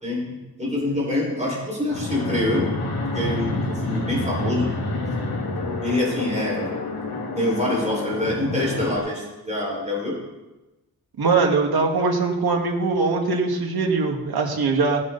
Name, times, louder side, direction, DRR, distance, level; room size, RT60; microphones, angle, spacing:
voice 1, 0.0-2.7 3.1-4.7 5.8-6.7 7.3-10.2, left 1 dB, 20° right, -4 dB, 5.6 m, -25 dB
Fixed-wing aircraft airplane, 1.9-9.0, left 2 dB, 80° left, 3.3 m, -28 dB
voice 2, 11.2-15.0, right 4 dB, 70° right, 1 dB, 2.2 m, -21 dB
18.0 x 9.8 x 4.2 m, 1.1 s
wide cardioid pair, 115°, 38 cm